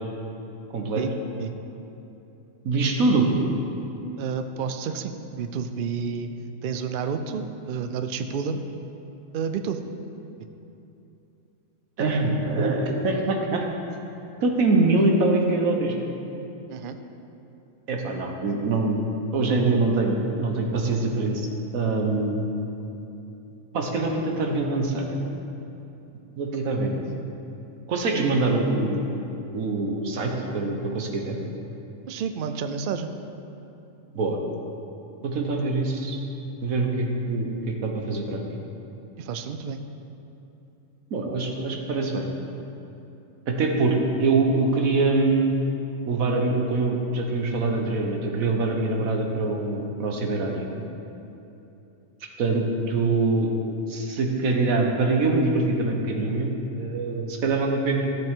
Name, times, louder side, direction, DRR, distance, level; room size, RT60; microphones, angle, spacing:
voice 1, 0.7-1.0 2.6-3.3 12.0-13.6 14.4-15.9 17.9-19.0 19.3-21.5 21.7-22.4 23.7-25.2 26.4-27.0 27.9-29.1 29.5-31.4 34.1-34.4 35.2-36.2 36.6-38.4 41.1-42.3 43.5-45.6 46.1-50.7 52.4-53.5 53.9-56.5 56.8-58.1, right 3 dB, 85° right, 2 dB, 1.5 m, -24 dB
voice 2, 4.2-6.3 6.6-8.6 9.3-9.8 16.7-17.0 32.1-33.1 39.2-39.8, right 6 dB, 60° right, 8 dB, 0.5 m, -30 dB
13.5 x 7.6 x 3.7 m, 2.9 s
omnidirectional pair, 1.4 m